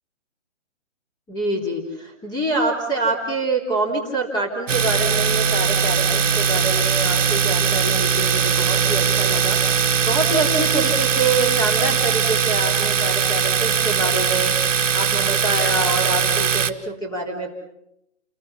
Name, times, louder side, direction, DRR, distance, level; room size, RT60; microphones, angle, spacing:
voice 1, 1.3-9.6 10.0-14.5 14.9-17.5, right 2 dB, 10° left, 2 dB, 3.5 m, -25 dB
Domestic sounds home sounds, 4.7-16.7, right 6 dB, 80° right, 1.9 m, -20 dB
29.5 x 22.0 x 7.1 m, 0.80 s
hypercardioid pair, 155°, 37 cm